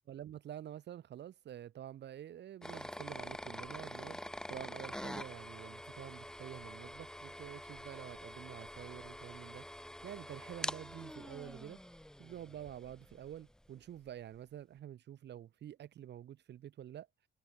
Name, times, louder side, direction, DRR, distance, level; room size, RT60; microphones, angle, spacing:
voice 1, 0.1-11.8 12.2-17.1, right 11 dB, 60° right, 0.8 m, -48 dB
sound 1, 2.6-13.4, equal, 5° left, 1.9 m, -46 dB
open air
cardioid pair, 90°, 20 cm